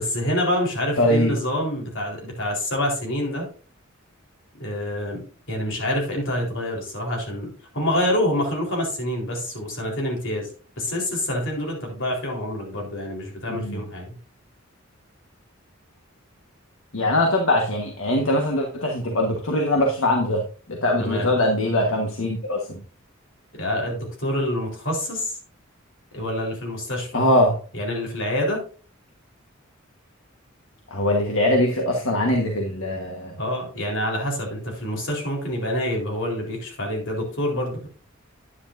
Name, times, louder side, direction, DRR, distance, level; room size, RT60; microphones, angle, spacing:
voice 1, 0.0-3.5 4.6-5.2 5.5-10.5 10.8-14.2 21.0-21.3 23.5-25.4 26.1-27.2 27.7-28.6 33.4-37.9, left 1 dB, 65° left, 0 dB, 4.0 m, -27 dB
voice 2, 1.0-1.3 13.5-13.8 16.9-22.8 27.1-27.6 30.9-33.4, left 1 dB, 80° left, 1 dB, 1.5 m, -22 dB
10.0 x 9.8 x 2.6 m, 0.39 s
head